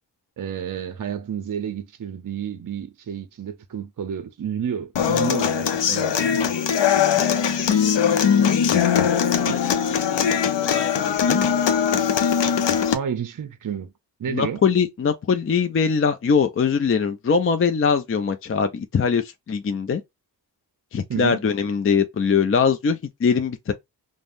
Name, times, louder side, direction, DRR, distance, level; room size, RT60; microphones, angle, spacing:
voice 1, 0.4-6.5 9.4-9.6 12.9-13.9 14.2-14.6 21.1-21.4, right 8 dB, 50° right, 0.6 m, -30 dB
Human voice / Acoustic guitar, 5.0-12.9, left 8 dB, 80° left, 0.6 m, -20 dB
voice 2, 7.2-8.7 9.1-10.3 10.6-11.5 14.3-20.0 20.9-23.7, left 6 dB, 35° left, 0.4 m, -23 dB
3.3 x 2.1 x 2.5 m
wide cardioid pair, 75°, 42 cm